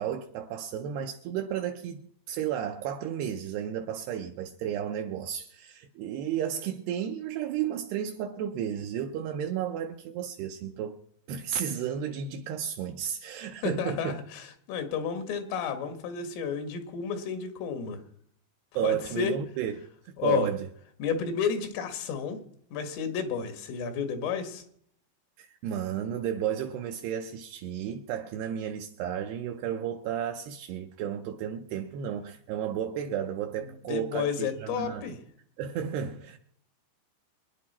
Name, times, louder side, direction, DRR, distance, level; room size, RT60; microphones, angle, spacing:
voice 1, 0.0-11.0 11.3-14.2 18.8-20.7 25.4-35.1 35.6-36.4, right 9 dB, 85° right, 2.3 m, -33 dB
voice 2, 13.6-18.0 18.8-19.3 20.2-20.5 21.0-22.4 22.7-24.6 33.6-35.2, left 7 dB, 85° left, 4.3 m, -31 dB
24.0 x 10.5 x 4.3 m
omnidirectional pair, 5.6 m